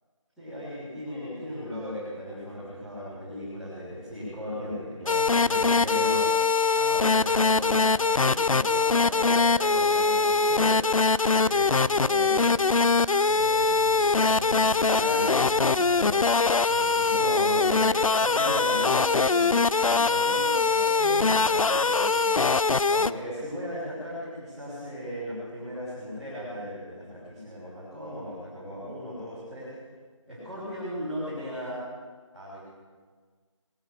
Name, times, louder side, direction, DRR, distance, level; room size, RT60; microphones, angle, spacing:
voice 1, 0.4-6.3 6.7-22.5 22.8-29.7 30.3-31.8 32.3-32.6, equal, ahead, -17 dB, 1.4 m, -36 dB
sound 1, 5.1-23.1, left 4 dB, 90° left, 0.5 m, -22 dB
19.0 x 7.2 x 8.2 m, 1.5 s
figure-of-eight pair, 175°, 17 cm